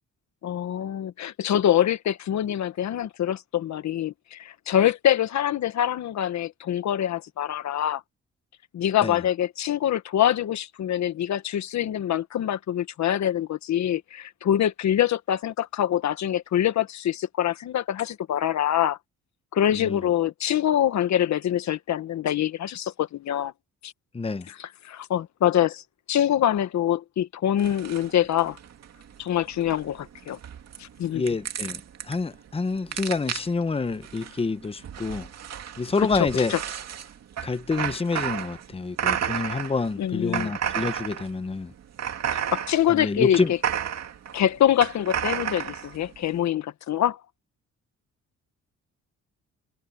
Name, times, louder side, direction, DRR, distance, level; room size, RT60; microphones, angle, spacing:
voice 1, 0.4-8.0 8.7-19.0 19.5-23.5 23.8-23.9 24.5-25.8 26.1-28.6 29.2-30.4 30.8-31.2 36.0-36.6 40.0-40.5 42.5-43.6 44.3-47.2, left 11 dB, 65° left, 1.5 m, -25 dB
voice 2, 24.1-24.5 31.1-31.8 32.1-35.3 35.8-36.5 37.4-41.7 42.9-43.5, left 4 dB, 20° left, 1.0 m, -27 dB
sound 1, 27.6-46.4, right 9 dB, 60° right, 2.3 m, -33 dB
cardioid pair, 90°, 30 cm